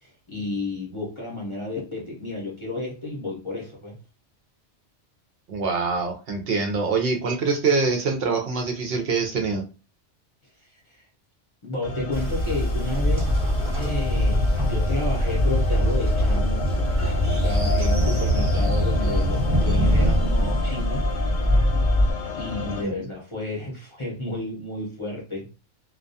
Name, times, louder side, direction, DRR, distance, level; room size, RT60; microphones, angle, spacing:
voice 1, 0.0-4.0 10.7-11.1 11.6-13.3 13.8-16.7 17.4-21.0 22.3-25.5, left 2 dB, 30° left, -4 dB, 0.6 m, -31 dB
voice 2, 5.5-9.6 22.8-23.0, right 4 dB, 65° right, 3 dB, 0.7 m, -24 dB
sound 1, 11.8-22.8, left 3 dB, 80° left, 0.9 m, -32 dB
Train, 12.1-22.1, equal, 30° right, 0.8 m, -22 dB
2.3 x 2.2 x 2.5 m, 0.31 s
omnidirectional pair, 1.2 m